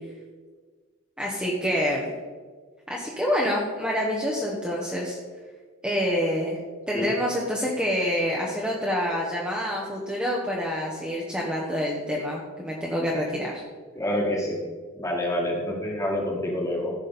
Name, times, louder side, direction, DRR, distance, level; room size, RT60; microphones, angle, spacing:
voice 1, 1.2-2.1 2.9-5.2 5.8-6.6 6.9-13.6, equal, 5° right, -4 dB, 1.1 m, -27 dB
voice 2, 13.9-14.6 14.9-16.9, left 1 dB, 15° left, -1 dB, 1.7 m, -27 dB
14.5 x 6.0 x 4.1 m, 1.5 s
head